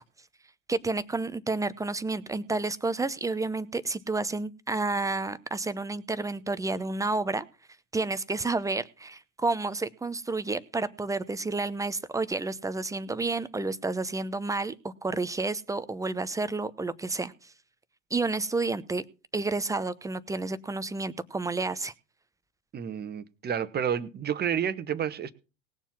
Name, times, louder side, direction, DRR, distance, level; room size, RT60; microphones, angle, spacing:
voice 1, 0.7-7.4 7.9-17.5 18.1-19.0 19.3-21.9, right 3 dB, 10° right, 0.9 m, -30 dB
voice 2, 22.7-25.3, right 8 dB, 25° right, 1.3 m, -30 dB
19.0 x 7.2 x 5.9 m
hypercardioid pair, 95°, 40 cm